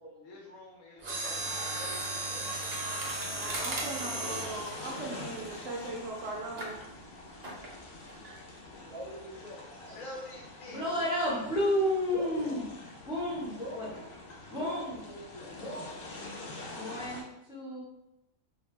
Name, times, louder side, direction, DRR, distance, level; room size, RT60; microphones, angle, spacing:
voice 1, 0.2-1.9 9.9-10.8, left 1 dB, 70° left, -3 dB, 1.0 m, -47 dB
Mechanisms, 1.0-6.0 6.6-6.8 7.4-7.8 8.1-8.2, right 2 dB, 85° right, 0.3 m, -36 dB
voice 2, 1.2-2.0 2.3-2.5 2.8-3.0 3.3-3.9 4.2-4.4 8.9-10.0 12.1-12.6 13.6-14.1 14.5-16.1, equal, 35° left, -9 dB, 0.7 m, -45 dB
sound 1, 1.3-17.2, left 2 dB, 90° left, 0.5 m, -46 dB
voice 3, 3.3-6.8 8.2-8.4, right 2 dB, 65° right, -2 dB, 0.8 m, -39 dB
voice 4, 10.7-12.6 13.0-13.8 14.5-15.0 16.7-17.8, left 1 dB, 5° right, -8 dB, 0.6 m, -31 dB
2.6 x 2.1 x 3.0 m, 0.88 s
omnidirectional pair, 1.5 m